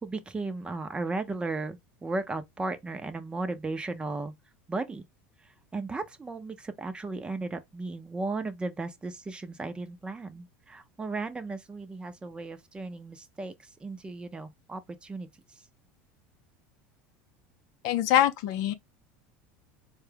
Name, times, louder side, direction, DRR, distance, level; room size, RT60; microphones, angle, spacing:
voice 1, 0.0-4.3 4.7-5.0 5.7-13.5 13.8-15.3, right 3 dB, 15° right, 0.6 m, -35 dB
voice 2, 17.8-18.7, left 12 dB, 65° left, 0.6 m, -24 dB
4.3 x 2.3 x 3.4 m
supercardioid pair, 120°, 6 cm